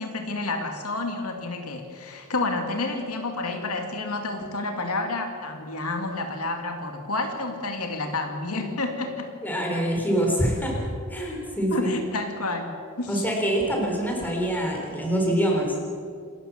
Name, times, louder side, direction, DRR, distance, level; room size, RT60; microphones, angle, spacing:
voice 1, 0.0-9.3 11.7-13.3, left 2 dB, 80° left, 4 dB, 2.4 m, -30 dB
voice 2, 9.4-10.8 11.1-11.9 13.1-15.7, right 1 dB, 10° left, 0 dB, 4.0 m, -25 dB
27.0 x 13.5 x 7.2 m, 2.4 s
head